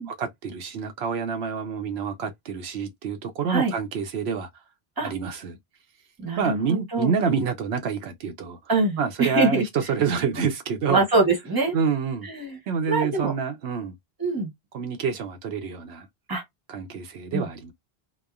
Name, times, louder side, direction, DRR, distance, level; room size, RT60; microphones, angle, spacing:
voice 1, 0.0-4.5 5.0-5.6 6.4-8.6 9.0-11.0 11.7-12.3 12.7-13.9 14.7-16.1 16.7-17.7, right 6 dB, 90° right, 0.9 m, -27 dB
voice 2, 6.2-7.1 8.7-9.6 10.9-11.8 12.2-12.6 12.9-13.3 14.2-14.5 16.3-16.4 17.3-17.5, right 3 dB, 20° right, 1.0 m, -24 dB
2.9 x 2.1 x 2.3 m
omnidirectional pair, 1.1 m